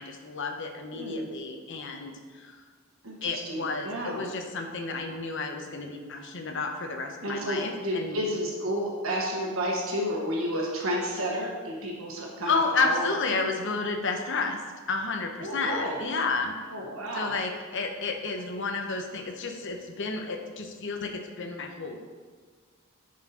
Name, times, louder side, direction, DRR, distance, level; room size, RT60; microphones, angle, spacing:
voice 1, 0.0-2.6 3.2-8.2 12.5-14.6 14.9-16.5 17.1-22.0, left 4 dB, 65° left, 4 dB, 0.9 m, -31 dB
voice 2, 0.9-1.3 3.0-4.2 7.2-13.1 15.4-16.0 16.7-17.3, equal, 75° right, -2 dB, 1.5 m, -31 dB
10.5 x 4.8 x 4.3 m, 1.5 s
head